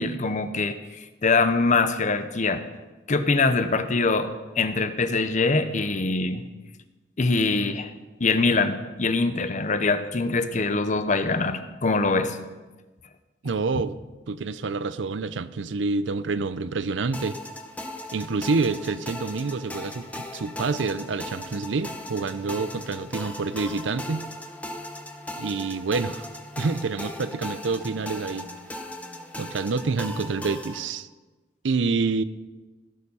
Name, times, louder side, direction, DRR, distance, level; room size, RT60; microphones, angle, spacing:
voice 1, 0.0-2.6 3.1-6.4 7.2-7.9 8.2-12.4, left 3 dB, 45° left, 0.8 m, -23 dB
voice 2, 13.4-14.0 14.3-17.4 18.1-24.2 25.4-26.3 26.6-28.5 29.4-31.1 31.6-32.2, right 4 dB, 85° right, 0.5 m, -27 dB
sound 1, 17.1-30.9, left 1 dB, 10° left, 1.0 m, -38 dB
16.0 x 6.9 x 5.5 m
head